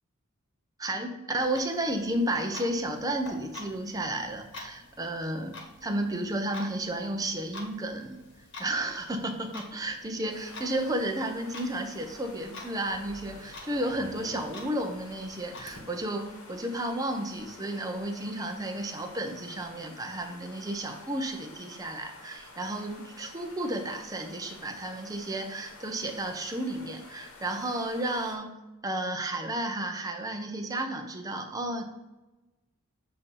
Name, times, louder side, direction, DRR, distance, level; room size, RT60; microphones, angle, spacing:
voice 1, 0.8-5.6 5.8-8.2 8.6-28.6 28.8-31.8, right 1 dB, 15° right, 4 dB, 0.6 m, -32 dB
Clock, 1.3-15.8, left 2 dB, 55° left, 1.2 m, -48 dB
sound 1, 10.3-28.4, left 2 dB, 80° left, 1.3 m, -50 dB
7.6 x 2.7 x 5.5 m, 1.1 s
head